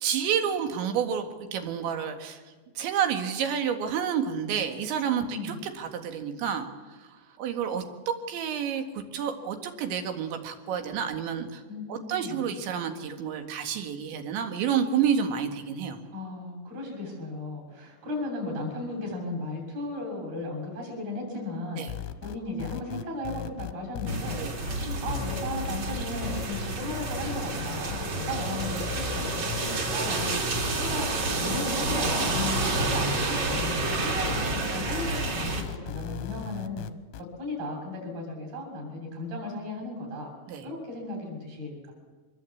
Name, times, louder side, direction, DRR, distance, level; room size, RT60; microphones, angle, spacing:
voice 1, 0.0-2.4 2.8-6.7 7.0-7.1 7.4-11.6 11.9-16.0 21.8-21.9 24.4-24.5 40.5-40.6, right 8 dB, 85° right, 5 dB, 4.2 m, -29 dB
voice 2, 5.3-5.6 11.7-12.4 16.1-30.4 30.8-36.9 37.4-40.3 40.6-41.9, left 1 dB, 55° right, -1 dB, 9.2 m, -35 dB
sound 1, 21.9-37.2, left 10 dB, 90° left, 3.3 m, -37 dB
sound 2, 24.1-35.6, right 2 dB, 40° right, 4.0 m, -30 dB
24.5 x 21.5 x 8.6 m, 1.3 s
omnidirectional pair, 5.1 m